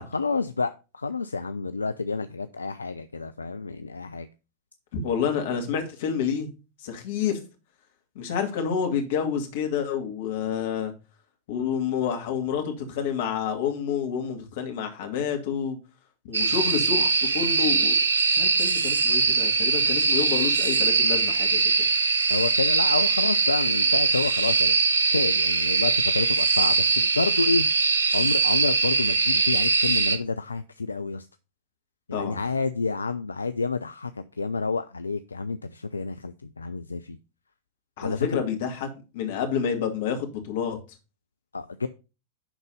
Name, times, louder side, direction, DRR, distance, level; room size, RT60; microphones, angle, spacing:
voice 1, 0.1-4.3 22.3-24.8 25.1-27.7 28.1-31.3 32.1-34.1 34.4-37.2 38.0-38.3 41.5-41.9, left 4 dB, 80° left, 0.4 m, -29 dB
voice 2, 4.9-6.5 6.8-7.4 8.2-10.9 11.5-15.8 16.2-17.9 18.3-21.7 32.1-32.4 38.0-38.9 39.1-40.8, left 7 dB, 55° left, 2.3 m, -28 dB
sound 1, 16.3-30.2, right 4 dB, 70° right, 0.8 m, -22 dB
10.5 x 4.0 x 5.4 m
figure-of-eight pair, 90°, 0 cm